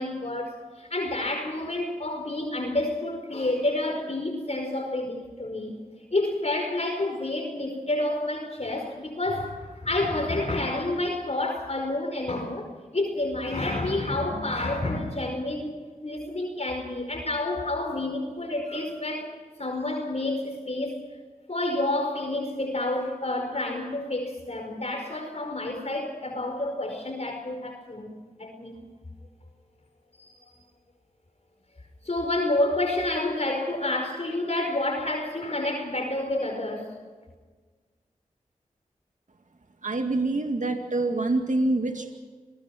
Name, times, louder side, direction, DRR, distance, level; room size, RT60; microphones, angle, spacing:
voice 1, 0.0-5.8 6.1-15.8 16.0-19.3 19.6-21.0 21.5-28.8 30.3-30.4 32.0-36.9, left 2 dB, 50° left, 2 dB, 5.0 m, -29 dB
voice 2, 39.8-42.2, right 2 dB, 65° right, 5 dB, 2.1 m, -26 dB
26.5 x 19.0 x 6.1 m, 1.4 s
cardioid pair, 45°, 14 cm